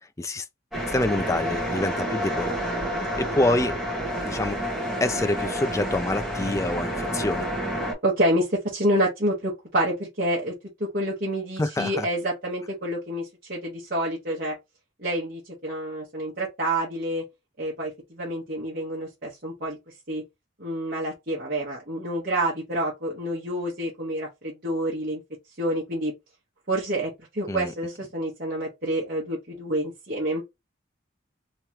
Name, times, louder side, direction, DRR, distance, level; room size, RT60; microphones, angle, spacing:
sound 1, 0.7-7.9, equal, ahead, 1.7 m, -29 dB
voice 1, 0.9-2.6 3.2-3.8 4.2-4.6 5.0-7.5 11.6-12.1 27.5-27.7, left 2 dB, 15° left, 0.3 m, -26 dB
voice 2, 8.0-10.5 10.8-14.5 15.0-17.2 17.6-19.8 20.1-20.2 20.6-25.2 25.6-26.1 26.7-30.4, right 1 dB, 45° right, 1.2 m, -28 dB
3.4 x 3.1 x 2.9 m
head